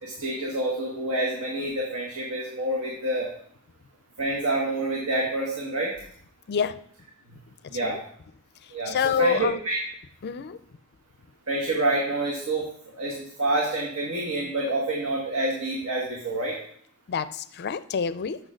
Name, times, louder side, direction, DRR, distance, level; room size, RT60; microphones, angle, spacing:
voice 1, 0.0-3.3 4.2-5.9 7.7-8.0 8.7-9.8 11.5-12.6 13.0-16.5, right 2 dB, 75° right, -2 dB, 1.5 m, -27 dB
voice 2, 8.9-9.6 10.2-10.6 17.1-18.4, left 6 dB, 45° left, 14 dB, 0.4 m, -27 dB
6.4 x 6.3 x 6.3 m, 0.63 s
head